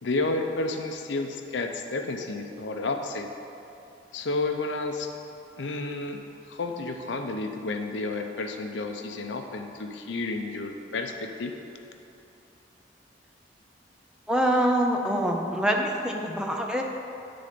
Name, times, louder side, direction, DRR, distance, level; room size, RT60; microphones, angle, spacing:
voice 1, 0.0-3.3 4.1-5.1 5.6-6.2 6.5-11.5, left 3 dB, 75° left, 5 dB, 0.6 m, -31 dB
voice 2, 14.3-16.8, equal, 5° right, 1 dB, 0.4 m, -25 dB
10.0 x 3.9 x 5.0 m, 2.8 s
head